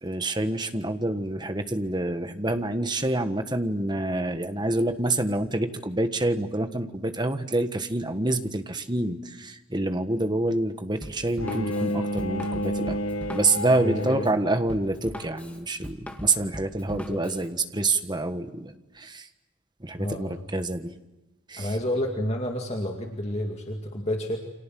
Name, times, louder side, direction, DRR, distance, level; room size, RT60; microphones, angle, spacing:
voice 1, 0.0-13.0 13.3-19.3 19.8-20.9 21.5-21.7, right 2 dB, 20° right, 8 dB, 1.5 m, -27 dB
Drum kit, 11.0-17.5, equal, 5° left, 2.2 m, -40 dB
Bowed string instrument, 11.4-14.6, equal, 85° left, 1.8 m, -30 dB
voice 2, 13.8-14.2 16.9-17.2 19.9-20.4 21.6-24.4, left 1 dB, 30° left, 2 dB, 2.3 m, -30 dB
29.5 x 26.0 x 7.7 m, 1.0 s
head